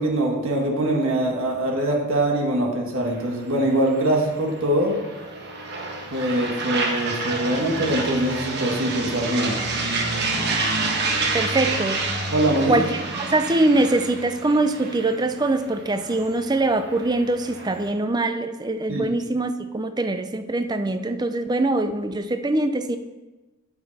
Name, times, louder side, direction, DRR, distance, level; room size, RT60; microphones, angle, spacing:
voice 1, 0.0-5.0 6.1-9.6 12.3-12.8 18.9-19.1, right 1 dB, 65° right, 0 dB, 1.7 m, -23 dB
sound 1, 3.1-17.9, right 3 dB, 50° right, 1.2 m, -29 dB
voice 2, 11.3-12.0 12.7-23.0, right 2 dB, 20° right, 9 dB, 0.4 m, -23 dB
8.4 x 8.1 x 4.1 m, 1.2 s
head